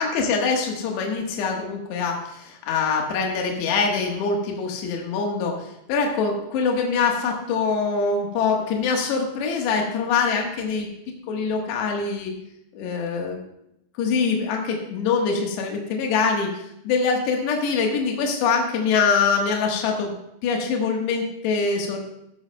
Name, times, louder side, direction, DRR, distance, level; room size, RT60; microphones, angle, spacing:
voice 1, 0.0-10.9 11.3-12.3 12.8-13.4 14.0-20.1 20.4-22.0, left 5 dB, 75° left, 1 dB, 3.4 m, -24 dB
14.5 x 14.0 x 2.2 m, 0.81 s
omnidirectional pair, 5.2 m